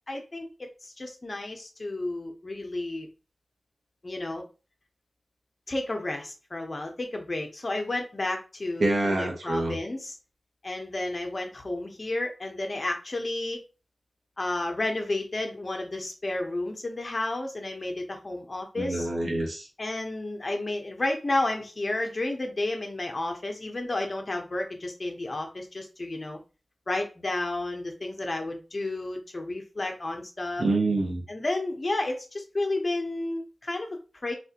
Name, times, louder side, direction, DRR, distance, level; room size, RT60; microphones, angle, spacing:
voice 1, 0.1-3.1 4.0-4.5 5.7-10.2 10.6-13.6 14.4-19.1 19.8-26.4 26.9-30.6 31.3-34.3, left 2 dB, 50° left, 3 dB, 0.9 m, -32 dB
voice 2, 8.8-9.8 18.8-19.7 30.6-31.2, right 2 dB, 85° right, -1 dB, 1.1 m, -26 dB
4.1 x 2.5 x 2.9 m, 0.32 s
cardioid pair, 45°, 0 cm